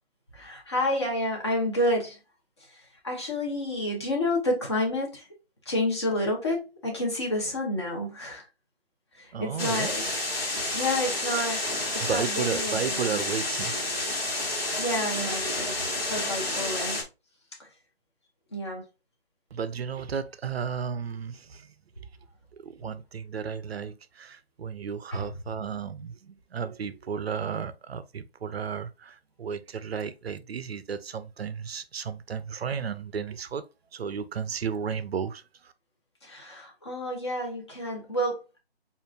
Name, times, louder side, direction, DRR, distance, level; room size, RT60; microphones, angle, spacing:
voice 1, 0.3-2.2 3.0-5.2 5.7-8.4 9.1-10.0 10.5-11.8 12.0-13.2 14.3-17.0 17.6-17.7 18.5-18.9 25.1-25.3 36.2-38.6, left 1 dB, 25° left, 0.8 m, -30 dB
voice 2, 9.3-10.1 12.0-14.1 19.5-21.7 22.5-33.7 33.9-35.7, right 6 dB, 70° right, 0.5 m, -34 dB
sound 1, 9.6-17.0, left 2 dB, 65° left, 1.5 m, -30 dB
5.1 x 2.5 x 2.4 m
figure-of-eight pair, 165°, 32 cm